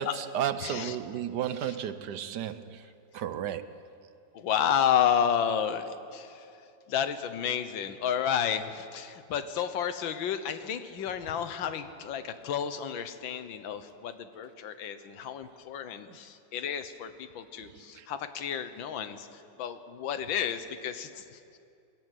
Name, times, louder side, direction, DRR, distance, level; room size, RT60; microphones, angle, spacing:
voice 1, 0.0-2.9 3.1-3.7 16.1-16.2 17.6-18.1, right 9 dB, 65° right, 1.2 m, -33 dB
voice 2, 0.6-1.0 4.3-6.5 6.9-21.6, left 8 dB, 75° left, 1.8 m, -31 dB
23.5 x 14.5 x 9.2 m
omnidirectional pair, 2.1 m